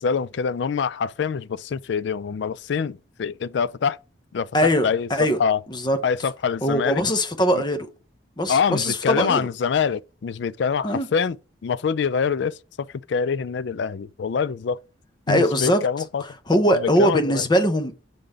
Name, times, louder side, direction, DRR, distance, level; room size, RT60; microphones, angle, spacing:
voice 1, 0.0-4.0 4.3-5.6 6.0-7.0 7.5-7.6 8.5-11.4 11.6-14.8 15.3-16.2 16.7-17.4, left 6 dB, 70° left, 0.4 m, -25 dB
voice 2, 4.5-5.4 5.7-6.0 6.6-7.9 8.4-9.5 10.8-11.1 15.3-15.8 16.5-17.9, equal, 25° left, 0.8 m, -21 dB
6.8 x 3.9 x 4.8 m
head